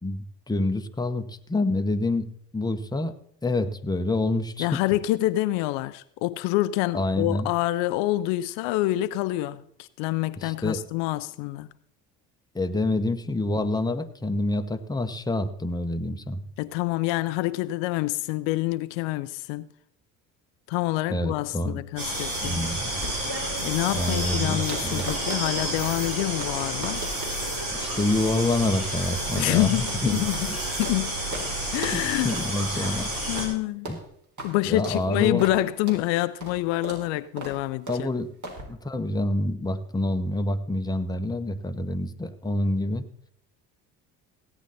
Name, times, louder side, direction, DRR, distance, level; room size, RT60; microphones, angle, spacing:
voice 1, 0.0-3.1 3.4-4.8 6.9-7.5 10.4-10.8 12.5-16.5 21.1-21.8 22.4-22.9 23.9-25.1 27.7-30.6 31.9-33.1 33.9-34.0 34.6-35.4 37.9-38.3 38.7-43.1, left 2 dB, 10° left, 1.0 m, -27 dB
voice 2, 4.6-11.7 16.6-19.7 20.7-22.6 23.6-27.1 29.4-30.4 30.7-31.1 31.7-32.3 32.8-32.9 33.3-33.9 34.4-38.1, left 17 dB, 65° left, 0.6 m, -27 dB
sound 1, 22.0-33.5, right 1 dB, 80° right, 4.1 m, -30 dB
sound 2, 22.7-31.0 31.3-31.5 31.7-32.0 32.3-32.5 32.8-33.0 33.4-33.5 33.8-34.0 34.4-34.5 34.8-35.0 35.4-35.6 35.9-36.0 36.4-36.6 36.8-37.0 37.4-37.6 37.9-38.0 38.4-38.6, right 1 dB, 40° right, 4.1 m, -38 dB
17.0 x 9.0 x 4.2 m
hypercardioid pair, 60°, 47 cm